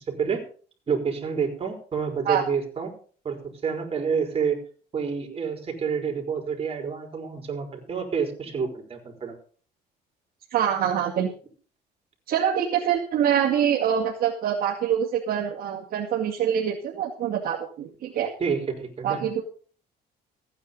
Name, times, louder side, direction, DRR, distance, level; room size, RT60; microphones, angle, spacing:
voice 1, 0.1-0.4 0.9-2.9 3.2-4.6 4.9-9.4 18.4-19.3, right 6 dB, 35° right, 2 dB, 4.5 m, -28 dB
voice 2, 10.5-11.3 12.3-18.3 19.0-19.4, right 9 dB, 60° right, -2 dB, 2.2 m, -25 dB
15.5 x 9.3 x 5.4 m, 0.43 s
cardioid pair, 110°, 17 cm